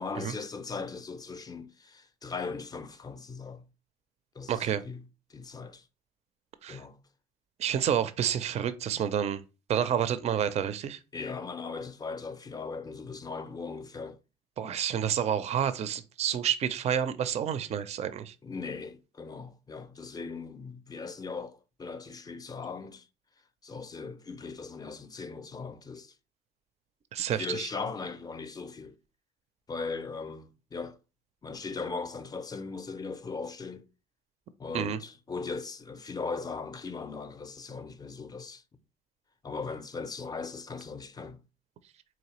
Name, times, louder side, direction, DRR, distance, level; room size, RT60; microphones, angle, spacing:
voice 1, 0.0-3.6 4.4-5.0 5.3-5.8 6.7-7.0 11.1-14.2 14.6-14.8 18.4-23.0 23.6-26.1 27.3-29.0 29.7-31.0 31.4-33.9 34.6-38.6 39.4-41.4, left 4 dB, 25° left, 0.4 m, -39 dB
voice 2, 4.5-4.8 6.6-6.8 7.6-9.4 9.7-11.0 14.6-18.3 27.1-27.7 34.7-35.0, right 9 dB, 40° right, 0.4 m, -29 dB
4.0 x 3.1 x 2.9 m
cardioid pair, 110°, 17 cm